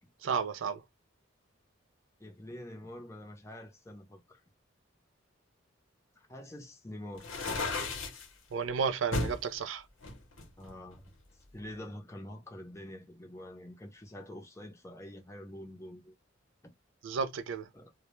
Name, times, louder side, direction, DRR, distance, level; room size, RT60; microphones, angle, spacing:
voice 1, 0.2-0.8 8.5-9.8 17.0-17.7, right 6 dB, 80° right, 0.4 m, -32 dB
voice 2, 2.2-4.4 6.2-7.3 10.6-11.1 11.5-16.1 16.6-16.7 17.7-17.9, left 1 dB, 15° left, 0.5 m, -46 dB
sound 1, 7.2-8.3 9.1-9.4 10.0-11.1, left 3 dB, 90° left, 0.8 m, -34 dB
2.1 x 2.0 x 2.9 m
head